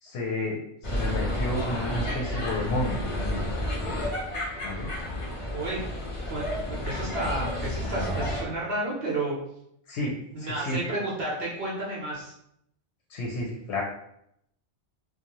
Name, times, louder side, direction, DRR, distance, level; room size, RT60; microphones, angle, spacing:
voice 1, 0.0-3.4 4.6-4.9 9.9-10.8 13.1-13.8, left 1 dB, 70° left, -3 dB, 0.8 m, -31 dB
sound 1, 0.8-8.4, left 1 dB, 35° left, 0.5 m, -31 dB
voice 2, 5.5-5.9 6.3-6.4 6.7-9.4 10.3-12.3, right 2 dB, 60° right, -4 dB, 0.8 m, -31 dB
2.5 x 2.2 x 2.9 m, 0.75 s
omnidirectional pair, 1.2 m